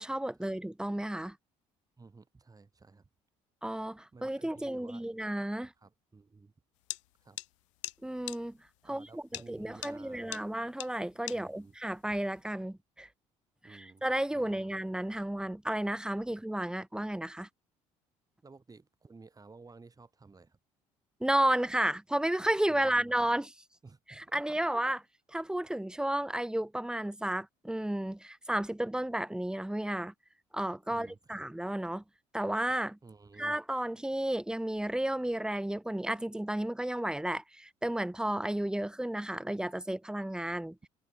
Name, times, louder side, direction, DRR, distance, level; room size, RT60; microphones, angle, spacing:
voice 1, 0.0-1.4 3.6-5.7 8.0-8.6 8.9-13.1 13.7-17.5 21.2-23.5 24.1-25.0 25.3-30.1 30.5-32.0 32.3-33.0 33.4-40.8, right 1 dB, 5° right, 1.1 m, -32 dB
voice 2, 2.0-3.1 4.1-5.1 5.8-6.5 7.2-7.4 8.8-10.4 11.3-11.7 13.6-14.1 14.3-14.7 18.4-20.6 22.7-23.2 23.8-24.8 30.9-31.5 33.0-33.6, right 4 dB, 25° right, 3.7 m, -54 dB
sound 1, 6.9-7.0 7.4-7.5 7.8-7.9 8.3-8.4 9.3-9.4 9.8-9.9 10.3-10.4 10.8-10.9 11.3-11.4, left 21 dB, 90° left, 1.3 m, -38 dB
hypercardioid pair, 65°, 15 cm